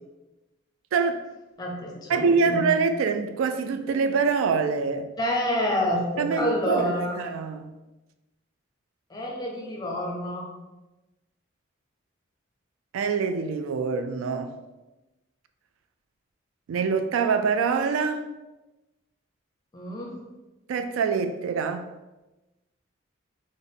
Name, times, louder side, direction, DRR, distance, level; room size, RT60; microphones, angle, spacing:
voice 1, 0.9-1.2 2.1-5.1 6.2-7.7 12.9-14.5 16.7-18.3 20.7-21.9, right 5 dB, 90° right, 8 dB, 0.3 m, -25 dB
voice 2, 1.6-2.6 5.2-7.2 9.1-10.5 19.7-20.2, equal, 20° left, -1 dB, 0.6 m, -28 dB
3.6 x 2.0 x 3.7 m, 1.1 s
head